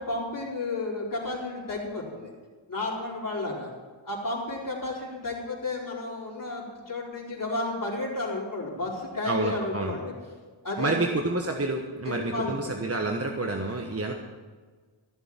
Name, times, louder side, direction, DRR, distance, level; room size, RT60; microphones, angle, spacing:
voice 1, 0.0-2.3 2.7-3.7 4.0-10.1 10.6-11.0 12.0-12.7, left 2 dB, 40° left, -5 dB, 4.3 m, -32 dB
voice 2, 9.2-9.9 10.8-14.1, right 2 dB, 30° right, 2 dB, 1.3 m, -28 dB
15.5 x 6.9 x 8.9 m, 1.4 s
cardioid pair, 75°, 48 cm